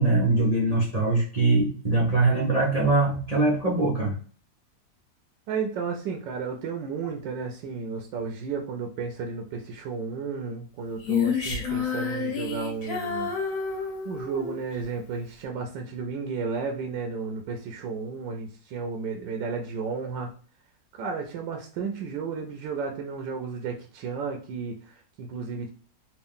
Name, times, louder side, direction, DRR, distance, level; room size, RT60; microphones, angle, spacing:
voice 1, 0.0-4.1, right 2 dB, 45° right, -4 dB, 0.5 m, -22 dB
voice 2, 5.5-13.3 13.7-20.3 21.0-25.7, right 5 dB, 85° right, 3 dB, 1.3 m, -33 dB
Female singing, 11.0-14.6, left 5 dB, 55° left, 1.3 m, -29 dB
3.5 x 2.5 x 3.5 m, 0.41 s
omnidirectional pair, 1.9 m